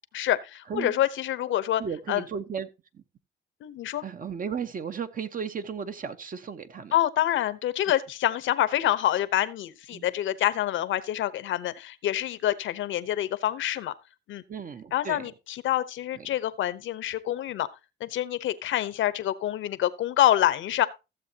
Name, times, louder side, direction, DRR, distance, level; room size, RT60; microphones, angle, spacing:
voice 1, 0.1-1.8 2.1-2.2 3.6-4.0 6.9-13.9 14.3-14.4 14.9-17.7 18.0-20.9, left 12 dB, 75° left, 0.9 m, -26 dB
voice 2, 1.8-2.7 2.9-3.0 4.0-6.9 9.9-10.1 14.5-15.3 16.1-16.3, right 6 dB, 45° right, 1.1 m, -35 dB
15.0 x 7.4 x 2.8 m
cardioid pair, 90°, 20 cm